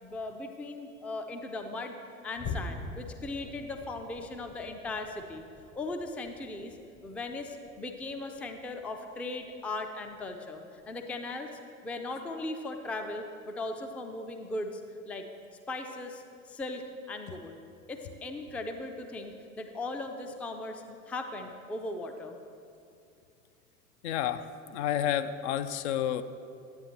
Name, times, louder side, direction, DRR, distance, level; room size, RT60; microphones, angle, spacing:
voice 1, 0.0-2.0 2.2-5.4 5.7-6.8 7.0-11.5 11.8-15.2 15.7-17.6 17.9-22.4, left 2 dB, 5° left, 5 dB, 0.3 m, -38 dB
sound 1, 2.4-9.0 9.4-9.7 10.1-10.2 10.8-10.9, left 4 dB, 35° left, 0.9 m, -44 dB
voice 2, 24.0-26.2, left 10 dB, 60° left, 11 dB, 0.5 m, -30 dB
9.5 x 9.3 x 3.0 m, 2.5 s
figure-of-eight pair, 75°, 40 cm